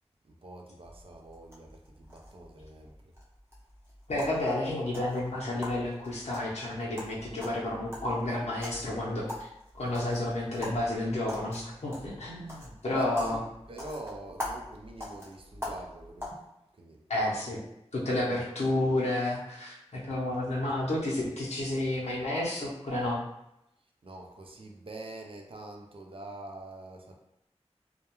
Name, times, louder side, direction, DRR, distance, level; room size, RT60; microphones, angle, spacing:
voice 1, 0.2-3.0 12.9-16.4 16.7-17.0 20.8-20.9 24.0-27.1, right 2 dB, 55° right, 1 dB, 0.4 m, -45 dB
sound 1, 0.8-16.3, left 1 dB, 20° right, 0.8 m, -44 dB
voice 2, 4.1-9.2 9.7-13.4 17.1-17.6 17.9-23.2, left 1 dB, 80° left, -6 dB, 0.6 m, -31 dB
2.3 x 2.1 x 2.9 m, 0.83 s
wide cardioid pair, 55°, 11 cm